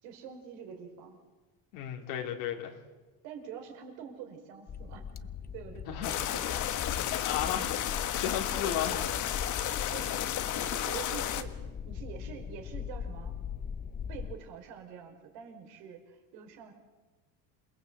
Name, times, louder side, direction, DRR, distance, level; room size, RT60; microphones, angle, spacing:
voice 1, 0.0-1.2 3.2-6.5 7.6-7.7 9.9-10.2 10.6-11.6 11.8-13.3 14.1-16.7, right 7 dB, 75° right, 4 dB, 5.1 m, -46 dB
voice 2, 1.7-2.8 5.9-6.1 6.5-6.6 7.2-9.3, left 9 dB, 85° left, 1 dB, 3.2 m, -35 dB
sound 1, 4.7-14.3, left 7 dB, 25° left, 0.7 m, -40 dB
sound 2, 6.0-11.4, left 11 dB, 45° left, 1.6 m, -33 dB
27.5 x 19.5 x 8.1 m, 1.3 s
cardioid pair, 140°, 41 cm